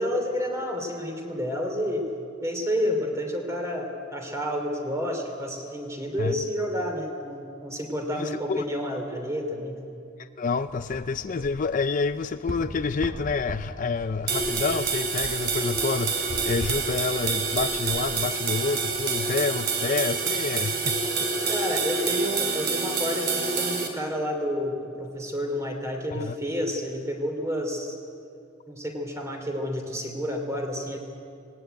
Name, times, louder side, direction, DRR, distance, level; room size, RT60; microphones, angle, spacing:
voice 1, 0.0-2.1 2.4-9.9 21.4-28.0 28.7-31.0, equal, 15° right, 3 dB, 3.0 m, -30 dB
voice 2, 8.1-8.6 10.2-21.3 26.1-26.4, left 4 dB, 40° left, 11 dB, 0.4 m, -28 dB
sound 1, 10.6-19.1, equal, 90° right, 2.3 m, -41 dB
sound 2, 14.3-23.9, right 4 dB, 55° right, 2.9 m, -27 dB
18.5 x 18.5 x 9.1 m, 2.5 s
head